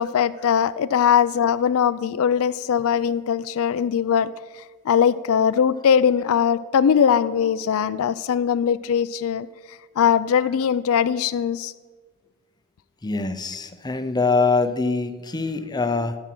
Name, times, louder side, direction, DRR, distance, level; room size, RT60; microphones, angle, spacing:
voice 1, 0.0-4.3 4.9-9.5 10.0-11.7, left 8 dB, 65° left, 15 dB, 0.4 m, -20 dB
voice 2, 13.0-16.2, left 4 dB, 20° left, 10 dB, 0.6 m, -23 dB
13.0 x 8.7 x 6.0 m, 1.4 s
head